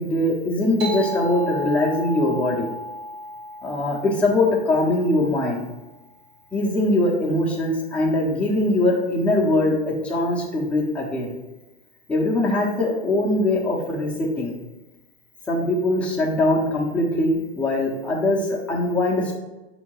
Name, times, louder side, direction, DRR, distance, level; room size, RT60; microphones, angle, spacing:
voice 1, 0.0-2.7 3.6-5.6 6.5-11.3 12.1-14.6 15.5-19.4, left 1 dB, 5° left, -4 dB, 0.8 m, -22 dB
sound 1, 0.8-5.8, equal, 35° right, 0.8 m, -34 dB
3.5 x 2.8 x 4.6 m, 1.1 s
hypercardioid pair, 110°, 34 cm